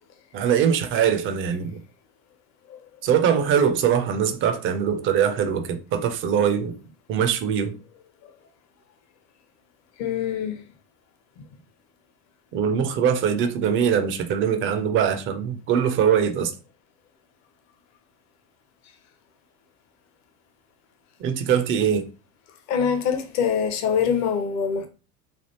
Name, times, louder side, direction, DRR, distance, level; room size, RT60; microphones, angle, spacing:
voice 1, 0.3-1.8 3.0-6.8 7.1-7.7 12.5-16.5 21.2-22.1, right 8 dB, 25° right, 0.5 m, -22 dB
voice 2, 10.0-10.6 22.7-24.9, left 7 dB, 35° left, 0.7 m, -24 dB
3.4 x 2.4 x 2.8 m
figure-of-eight pair, 75°, 47 cm